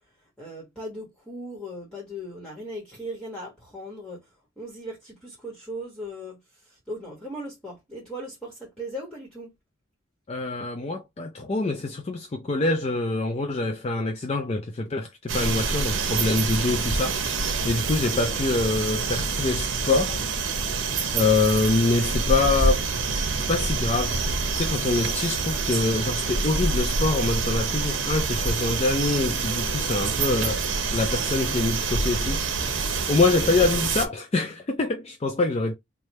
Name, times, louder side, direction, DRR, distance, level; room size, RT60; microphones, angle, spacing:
voice 1, 0.4-4.3 4.6-9.5 18.0-18.2 33.6-33.7, equal, 5° left, 1.3 m, -38 dB
voice 2, 10.3-17.2 17.6-20.2 21.1-22.9 23.5-24.2 24.6-32.4 33.1-35.7, left 3 dB, 35° left, 0.4 m, -25 dB
sound 1, 15.3-34.1, right 4 dB, 80° right, 0.8 m, -26 dB
3.3 x 2.3 x 4.1 m
head